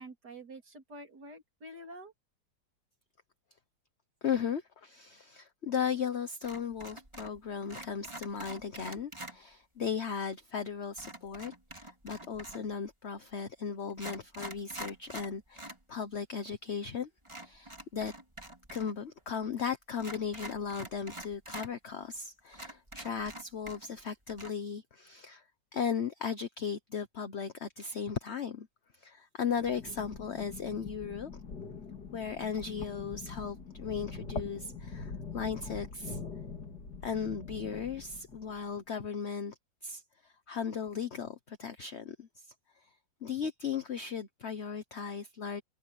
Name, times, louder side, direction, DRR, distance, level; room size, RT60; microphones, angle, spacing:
voice 1, 0.0-2.1, right 1 dB, 60° right, 3.8 m, -48 dB
voice 2, 4.2-17.1 17.4-18.1 18.7-25.4 25.7-28.7 29.0-31.3 32.1-36.2 37.0-39.5 39.8-42.5 42.8-42.9 43.2-45.6, left 6 dB, 40° left, 1.2 m, -36 dB
sound 1, 6.4-7.4 7.7-9.4 11.0-12.7 13.4-13.5 13.9-15.8 16.1-16.2 17.2-18.9 19.2-19.3 20.0-21.7 22.2-22.3 22.5-24.0 24.3-24.5, right 1 dB, 15° right, 3.6 m, -46 dB
sound 2, 29.5-38.7, left 4 dB, 60° left, 3.5 m, -43 dB
omnidirectional pair, 2.0 m